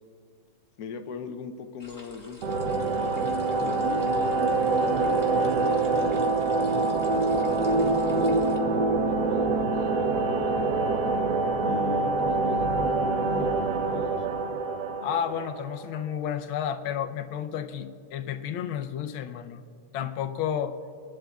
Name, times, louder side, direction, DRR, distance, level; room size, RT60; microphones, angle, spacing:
voice 1, 0.8-2.6 3.6-4.2 4.6-5.3 5.7-6.2 7.1-7.7 8.7-10.7 11.6-14.3, left 6 dB, 65° left, 7 dB, 1.0 m, -40 dB
sound 1, 1.8-8.6, left 1 dB, 10° left, 1.0 m, -48 dB
sound 2, 2.4-16.0, right 3 dB, 65° right, 1.1 m, -25 dB
voice 2, 15.0-19.6 19.9-20.8, left 9 dB, 85° left, 8 dB, 1.5 m, -31 dB
22.0 x 11.5 x 2.3 m, 2.4 s
omnidirectional pair, 2.2 m